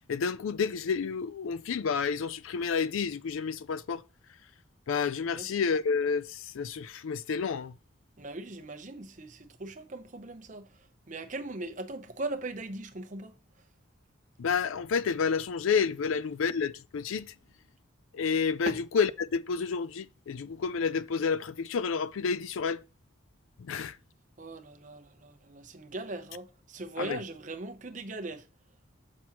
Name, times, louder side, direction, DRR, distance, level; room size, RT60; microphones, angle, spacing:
voice 1, 0.1-4.0 4.9-7.7 14.4-17.3 18.1-22.8 23.6-24.0 27.0-27.2, left 5 dB, 80° left, 0.4 m, -30 dB
voice 2, 8.2-10.7 11.1-13.3 18.6-18.8 24.4-28.5, right 2 dB, 40° right, 0.8 m, -39 dB
7.1 x 6.1 x 2.9 m
head